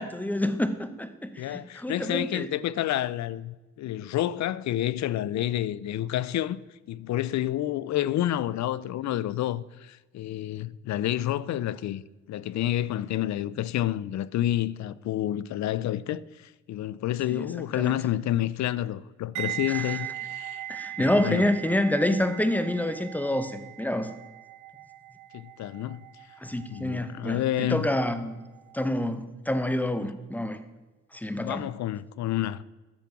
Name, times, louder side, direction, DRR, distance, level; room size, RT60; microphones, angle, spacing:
voice 1, 0.0-2.5 17.3-17.9 19.7-19.9 20.7-24.1 26.4-28.4 28.7-30.6 31.1-31.7, left 1 dB, 5° left, 1.0 m, -28 dB
voice 2, 1.4-6.6 6.9-12.0 12.3-20.6 21.0-21.5 25.3-26.0 26.7-27.9 31.3-32.6, left 13 dB, 65° left, 0.5 m, -29 dB
sound 1, 19.4-28.3 28.6-28.9, right 14 dB, 70° right, 0.8 m, -39 dB
10.5 x 7.3 x 6.0 m
cardioid pair, 90°, 30 cm